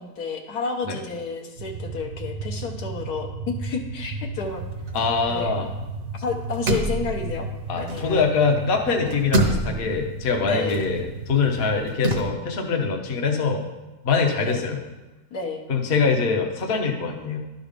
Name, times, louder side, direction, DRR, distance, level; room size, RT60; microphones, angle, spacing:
voice 1, 0.0-4.6 5.3-5.5 6.1-7.5 7.7-8.3 10.4-10.8 14.4-14.6 15.3-15.6, left 4 dB, 75° left, 2 dB, 1.5 m, -30 dB
sound 1, 1.6-11.8, right 3 dB, 70° right, 1.3 m, -35 dB
sound 2, 4.4-6.0 6.3-8.5 8.8-12.2, right 1 dB, 45° right, 0.8 m, -28 dB
voice 2, 4.9-5.7 7.7-13.7 14.0-14.8 15.7-17.4, left 4 dB, 45° left, 2 dB, 0.9 m, -23 dB
11.5 x 4.0 x 5.1 m, 1.1 s
omnidirectional pair, 1.7 m